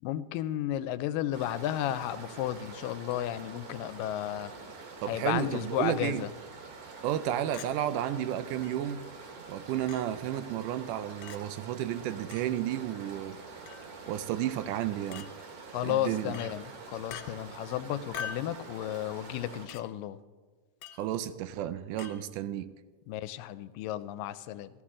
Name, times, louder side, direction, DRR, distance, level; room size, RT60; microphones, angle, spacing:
voice 1, 0.0-4.5 5.1-6.3 15.7-20.2 23.1-24.7, left 12 dB, 90° left, 14 dB, 2.2 m, -33 dB
sound 1, 1.3-19.7, right 4 dB, 60° right, 2.7 m, -46 dB
voice 2, 5.0-6.3 7.0-9.0 9.5-13.4 14.1-15.3 15.8-16.4 21.0-22.7, right 11 dB, 80° right, 13 dB, 2.0 m, -32 dB
Chink clink, 7.5-7.7 8.6-8.7 9.9-10.0 11.2-11.4 12.3-12.5 13.7-13.9 15.1-15.3 16.3-16.5 17.1-17.3 18.1-18.5 19.7-19.8 20.8-21.0 22.0-22.2, left 8 dB, 75° left, 2.2 m, -41 dB
14.5 x 14.0 x 3.7 m, 1.4 s
omnidirectional pair, 3.8 m